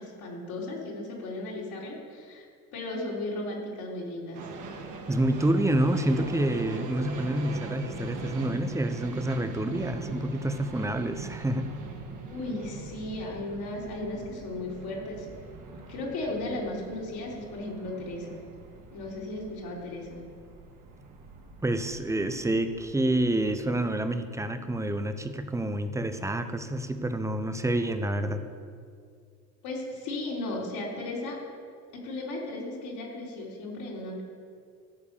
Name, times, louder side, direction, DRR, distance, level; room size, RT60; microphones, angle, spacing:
voice 1, 0.0-4.4 12.3-15.3 15.9-18.4 18.9-20.2 29.6-31.4 31.9-34.2, left 2 dB, 50° left, -4 dB, 3.8 m, -35 dB
sound 1, 4.3-23.7, right 3 dB, 40° right, 2.0 m, -42 dB
voice 2, 5.1-11.6 21.6-28.4, right 1 dB, 5° right, 8 dB, 0.9 m, -28 dB
14.0 x 7.1 x 6.8 m, 2.2 s
figure-of-eight pair, 65°, 47 cm